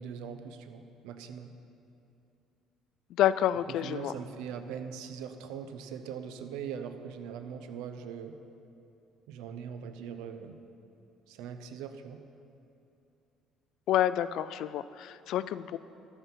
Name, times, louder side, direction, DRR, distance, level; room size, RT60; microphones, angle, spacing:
voice 1, 0.0-1.5 3.7-8.4 9.3-10.6 11.3-12.2, right 7 dB, 90° right, 9 dB, 0.7 m, -41 dB
voice 2, 3.1-4.1 13.9-15.8, left 11 dB, 70° left, 15 dB, 0.4 m, -28 dB
12.5 x 8.1 x 5.6 m, 2.8 s
cardioid pair, 115°, 0 cm